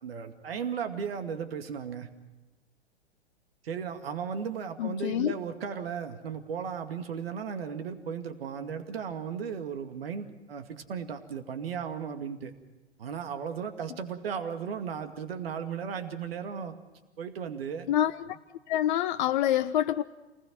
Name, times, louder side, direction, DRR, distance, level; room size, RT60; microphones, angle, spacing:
voice 1, 0.0-2.1 3.6-12.5 13.0-16.7 17.2-17.9, right 7 dB, 60° right, 2.4 m, -35 dB
voice 2, 4.8-5.3 17.9-18.4 18.7-20.0, left 12 dB, 45° left, 0.7 m, -26 dB
28.0 x 20.0 x 6.2 m
figure-of-eight pair, 100°, 34 cm